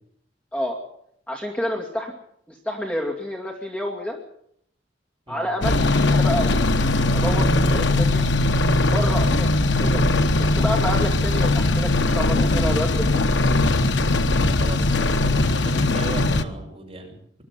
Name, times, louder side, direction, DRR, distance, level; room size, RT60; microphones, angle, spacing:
voice 1, 1.3-2.1 2.5-4.2 5.3-6.6 7.1-8.3 8.9-10.1 10.4-13.3, equal, 10° left, -1 dB, 2.5 m, -29 dB
sound 1, 5.6-16.4, left 2 dB, 65° left, 1.1 m, -20 dB
voice 2, 14.6-17.4, right 1 dB, 30° right, 1 dB, 5.9 m, -36 dB
21.5 x 12.5 x 9.7 m, 0.70 s
head